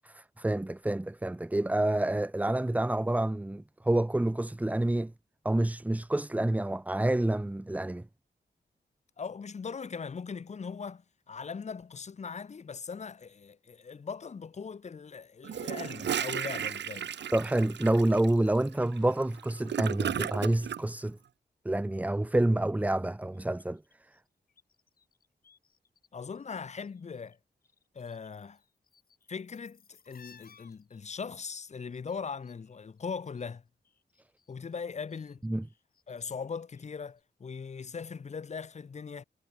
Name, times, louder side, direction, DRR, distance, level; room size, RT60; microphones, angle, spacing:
voice 1, 0.0-5.1 5.4-8.1 17.3-21.2 21.6-23.8 35.4-35.6, right 1 dB, 10° right, 0.8 m, -28 dB
voice 2, 9.2-17.1 26.1-27.4 27.9-28.6 29.3-33.6 34.5-35.4 36.1-39.2, left 5 dB, 40° left, 1.2 m, -40 dB
Gurgling / Toilet flush, 15.4-20.8, right 9 dB, 85° right, 1.1 m, -34 dB
sound 1, 23.3-26.1 26.3-27.4 27.6-33.6 33.8-36.9 37.2-37.3, left 6 dB, 55° left, 6.0 m, -63 dB
wide cardioid pair, 155°, 18 cm